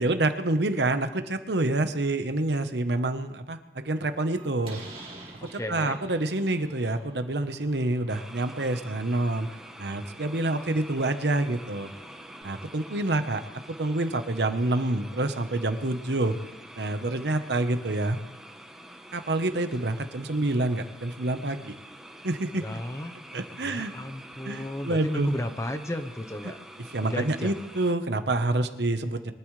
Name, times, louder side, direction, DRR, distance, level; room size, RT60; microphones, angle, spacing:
voice 1, 0.0-4.8 5.4-9.5 9.8-11.9 12.4-13.4 13.8-16.3 16.8-18.2 19.1-21.7 22.2-22.7 23.3-23.9 24.4-25.3 26.9-29.3, right 2 dB, 80° right, 9 dB, 1.1 m, -27 dB
Slam, 3.8-12.4, right 2 dB, 30° right, 2.6 m, -50 dB
voice 2, 5.4-6.0 22.6-23.1 23.6-26.6 27.0-27.6, left 1 dB, 15° left, 7 dB, 0.9 m, -34 dB
sound 1, 8.1-27.9, right 1 dB, 5° right, 1.0 m, -47 dB
23.5 x 12.5 x 3.3 m, 0.95 s
head